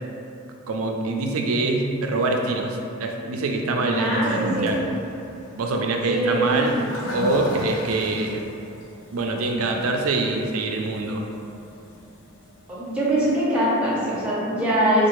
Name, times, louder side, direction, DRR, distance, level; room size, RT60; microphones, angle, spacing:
voice 1, 0.7-4.8 5.6-6.7 7.1-8.4 9.1-11.3, right 2 dB, 90° right, 2 dB, 0.4 m, -24 dB
voice 2, 3.8-4.7 6.1-6.9 12.7-15.1, right 1 dB, 5° right, -9 dB, 0.8 m, -23 dB
Toilet flush, 4.1-13.4, left 1 dB, 70° left, 0.6 m, -37 dB
4.4 x 2.4 x 3.0 m, 2.7 s
head